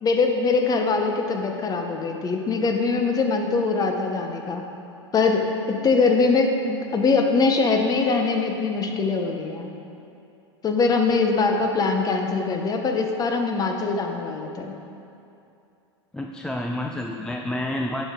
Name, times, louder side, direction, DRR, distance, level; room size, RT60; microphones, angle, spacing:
voice 1, 0.0-4.6 5.1-9.7 10.6-14.8, left 4 dB, 25° left, 4 dB, 0.8 m, -22 dB
voice 2, 16.1-18.1, left 1 dB, 5° left, 1 dB, 0.3 m, -29 dB
10.5 x 5.2 x 3.7 m, 2.7 s
hypercardioid pair, 95°, 15 cm